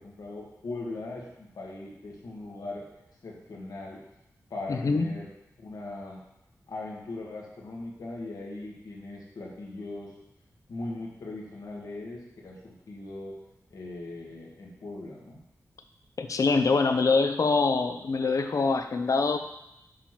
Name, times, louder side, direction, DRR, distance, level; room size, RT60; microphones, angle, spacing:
voice 1, 0.0-2.8 3.2-4.0 4.5-5.3 5.6-6.2 6.7-10.1 10.7-13.4 13.7-15.4, left 2 dB, 85° left, -2 dB, 1.5 m, -39 dB
voice 2, 4.7-5.1 16.2-19.4, left 4 dB, 60° left, 7 dB, 0.6 m, -24 dB
7.3 x 3.0 x 5.8 m, 0.88 s
cardioid pair, 65°, 6 cm